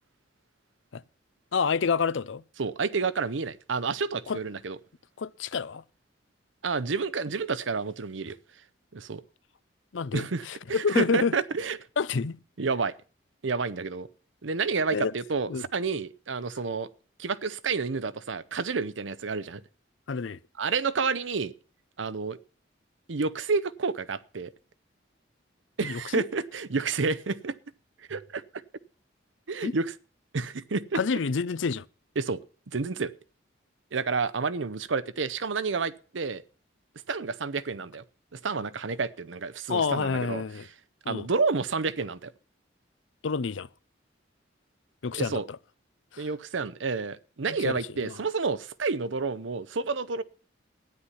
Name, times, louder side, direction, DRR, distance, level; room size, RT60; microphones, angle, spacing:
voice 1, 1.5-2.4 4.3-4.4 5.2-5.8 9.9-11.3 12.0-12.4 14.9-15.1 15.5-15.6 20.1-20.4 25.8-26.3 29.6-29.7 30.9-31.9 39.7-40.7 41.1-41.3 43.2-43.7 45.0-45.4 46.1-46.3 47.5-48.2, left 5 dB, 85° left, 0.6 m, -28 dB
voice 2, 2.6-4.8 6.6-8.4 8.9-9.2 10.1-11.8 12.6-12.9 13.4-14.1 14.4-16.9 17.2-19.6 20.6-21.5 22.0-22.4 23.1-24.5 25.8-27.6 28.1-28.4 29.5-29.9 30.3-31.0 32.2-32.4 32.7-33.1 33.9-36.4 37.1-38.0 38.3-40.4 41.1-42.3 45.1-45.5 46.2-50.2, right 4 dB, 85° right, 0.8 m, -29 dB
13.0 x 10.0 x 5.7 m
head